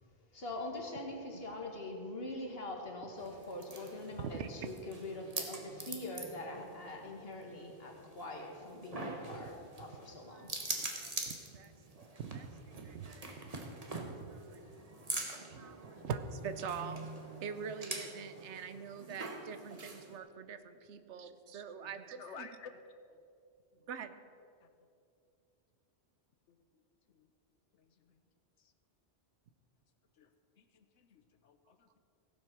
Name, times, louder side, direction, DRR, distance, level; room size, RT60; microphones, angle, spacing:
voice 1, 0.3-10.5, left 2 dB, 60° left, 1 dB, 1.9 m, -43 dB
sound 1, 3.2-20.2, right 2 dB, 35° right, 1.4 m, -45 dB
voice 2, 4.2-4.7 9.3-9.5 10.2-11.7 12.1-14.6 15.5-17.1 17.4-22.5 23.9-24.1, right 6 dB, 80° right, 10 dB, 1.1 m, -44 dB
voice 3, 22.2-22.7 24.6-24.7 26.5-26.6 27.1-27.2 30.2-30.3 30.6-32.0, left 6 dB, 90° left, 8 dB, 1.2 m, -52 dB
16.0 x 7.6 x 6.2 m, 2.5 s
omnidirectional pair, 1.2 m